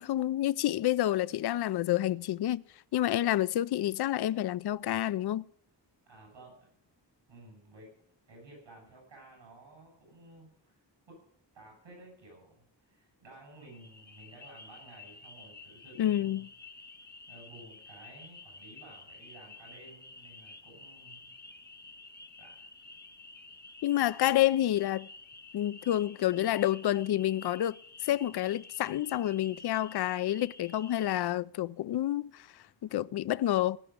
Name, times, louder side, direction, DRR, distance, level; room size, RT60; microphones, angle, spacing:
voice 1, 0.0-2.6 2.9-5.4 16.0-16.5 23.8-25.1 25.5-27.8 28.0-33.8, left 13 dB, 60° left, 0.5 m, -29 dB
voice 2, 6.1-6.7 7.3-7.9 8.3-11.2 11.5-16.4 17.3-21.3 22.4-22.7, right 2 dB, 90° right, 7.8 m, -54 dB
sound 1, 13.5-31.2, left 3 dB, 25° left, 0.8 m, -51 dB
17.5 x 5.9 x 9.5 m
wide cardioid pair, 95°, 43 cm